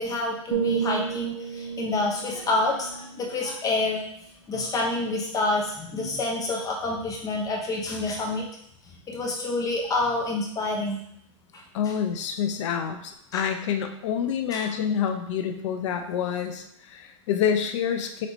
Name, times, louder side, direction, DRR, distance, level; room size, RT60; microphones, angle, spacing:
voice 1, 0.0-4.0 4.5-8.5 8.9-11.0 11.5-11.9 13.3-13.4 14.5-14.7, left 2 dB, 20° left, -1 dB, 0.8 m, -28 dB
sound 1, 0.5-4.4 4.9-5.2, right 7 dB, 85° right, 0.5 m, -33 dB
voice 2, 11.7-18.3, left 8 dB, 65° left, 6 dB, 0.7 m, -27 dB
5.2 x 2.8 x 3.1 m, 0.73 s
hypercardioid pair, 125°, 17 cm